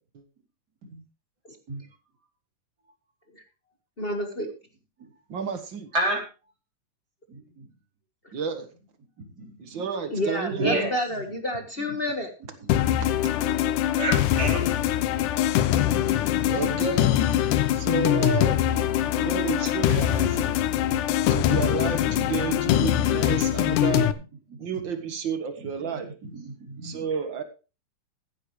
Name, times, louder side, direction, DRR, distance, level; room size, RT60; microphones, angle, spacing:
voice 1, 4.0-4.5 8.2-8.3 10.1-12.3 16.1-16.2, left 1 dB, 45° left, 5 dB, 0.7 m, -30 dB
voice 2, 5.3-5.9 8.3-8.7 9.6-10.8 13.0-13.3 16.5-17.3 17.7-18.6 19.1-20.6 21.3-24.1 24.6-26.1 26.8-27.4, right 6 dB, 50° right, 8 dB, 1.6 m, -31 dB
voice 3, 5.9-6.3 7.3-7.7 9.2-9.8 10.6-10.9 11.9-12.0 12.6-12.9 14.0-14.8 17.4-17.5 20.9-21.1 22.1-23.0 24.5-24.8 25.6-27.1, right 1 dB, 30° right, -1 dB, 4.5 m, -32 dB
sound 1, 12.7-24.1, left 11 dB, 80° left, 2.3 m, -23 dB
15.5 x 11.5 x 3.2 m, 0.31 s
omnidirectional pair, 3.6 m